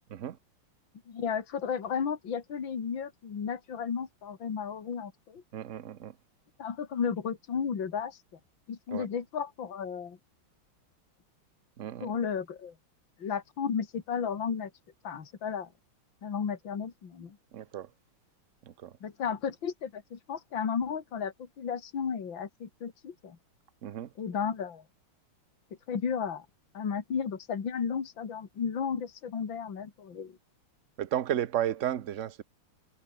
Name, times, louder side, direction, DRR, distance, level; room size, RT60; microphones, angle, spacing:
voice 1, 1.1-5.4 6.6-8.2 8.7-10.2 12.0-12.7 13.2-14.7 15.0-15.7 16.2-17.4 19.0-23.4 24.2-24.8 25.9-26.5 26.7-30.4, left 7 dB, 60° left, 3.0 m, -33 dB
voice 2, 5.5-6.1 8.9-9.1 11.8-12.1 17.5-17.9 18.6-18.9 23.8-24.1 31.0-32.4, right 11 dB, 50° right, 0.9 m, -33 dB
omnidirectional pair, 2.4 m